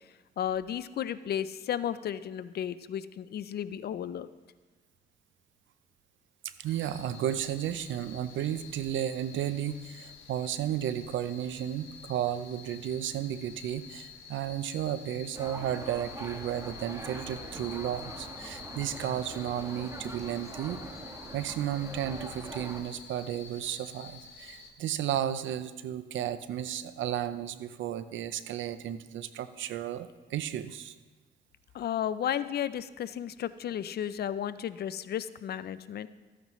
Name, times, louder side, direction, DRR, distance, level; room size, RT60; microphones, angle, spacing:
voice 1, 0.4-4.3 31.7-36.1, left 10 dB, 55° left, 15 dB, 0.4 m, -33 dB
voice 2, 6.6-20.8 21.3-30.9, right 10 dB, 75° right, 13 dB, 0.6 m, -33 dB
sound 1, 6.7-24.7, left 7 dB, 85° left, 1.2 m, -49 dB
sound 2, 15.3-22.8, right 2 dB, 15° right, 1.2 m, -43 dB
13.5 x 9.2 x 3.1 m, 1.2 s
cardioid pair, 90°, 20 cm